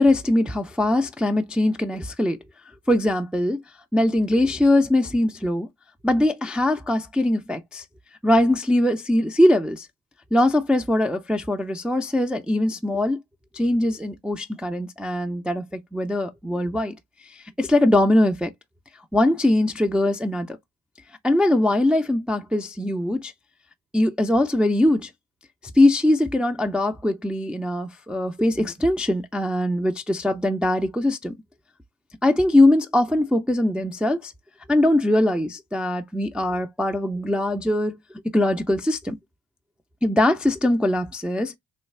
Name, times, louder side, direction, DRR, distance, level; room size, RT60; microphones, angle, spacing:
voice 1, 0.0-2.4 2.9-3.6 3.9-5.7 6.0-7.8 8.2-9.9 10.3-13.2 13.5-16.9 17.6-18.5 19.1-20.6 21.2-23.3 23.9-25.1 25.8-31.4 32.2-34.3 34.7-38.0 38.2-39.2 40.0-41.5, left 1 dB, ahead, 0.4 m, -21 dB
3.3 x 2.2 x 3.2 m
supercardioid pair, 55°, 46 cm